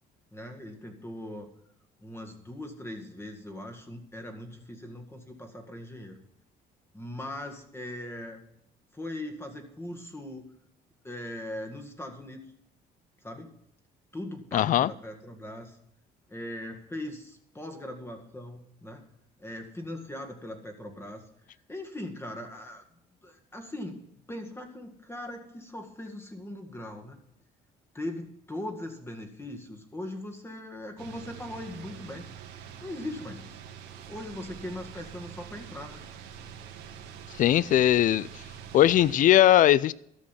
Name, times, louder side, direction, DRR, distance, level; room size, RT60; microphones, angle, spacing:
voice 1, 0.3-1.5 2.0-6.2 6.9-8.4 8.9-10.5 11.0-12.5 13.2-13.5 14.1-15.8 16.3-19.0 19.4-21.2 21.7-22.8 23.2-27.2 27.9-32.2 32.8-33.6 34.1-36.0, left 1 dB, 15° left, 5 dB, 1.9 m, -40 dB
voice 2, 14.5-14.9 37.4-38.3 38.7-39.9, left 12 dB, 50° left, 22 dB, 0.4 m, -20 dB
sound 1, 31.0-39.2, right 8 dB, 85° right, 1.7 m, -45 dB
12.5 x 6.4 x 7.5 m, 0.75 s
cardioid pair, 110°, 17 cm